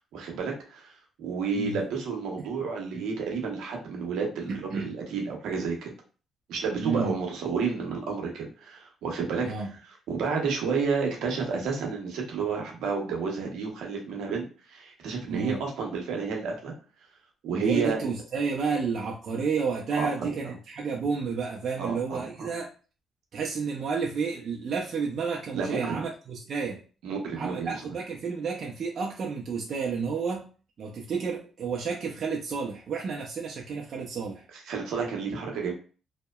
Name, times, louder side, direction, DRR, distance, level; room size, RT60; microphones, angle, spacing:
voice 1, 0.1-0.9 1.2-5.9 6.5-9.7 10.1-16.7 17.4-18.0 20.0-20.1 21.8-22.5 25.5-26.0 27.0-27.8 34.5-35.7, right 5 dB, 85° right, 1 dB, 0.7 m, -31 dB
voice 2, 4.5-4.9 6.8-7.1 9.4-9.7 15.3-15.6 17.5-22.7 23.3-26.8 27.4-30.5 30.8-34.4, right 5 dB, 55° right, -1 dB, 0.4 m, -31 dB
2.7 x 2.1 x 2.2 m, 0.37 s
cardioid pair, 90°, 0 cm